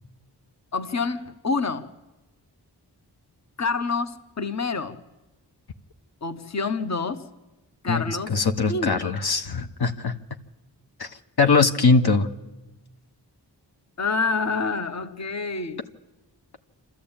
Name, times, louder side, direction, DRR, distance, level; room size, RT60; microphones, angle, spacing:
voice 1, 0.7-1.9 3.6-5.0 6.2-7.3 7.8-8.3 8.7-9.2 14.0-15.8, left 4 dB, 40° left, 11 dB, 1.1 m, -27 dB
voice 2, 8.3-10.1 11.0-11.1 11.4-12.3, left 4 dB, 65° left, 7 dB, 1.2 m, -21 dB
27.0 x 13.0 x 8.9 m, 1.1 s
cardioid pair, 50°, 41 cm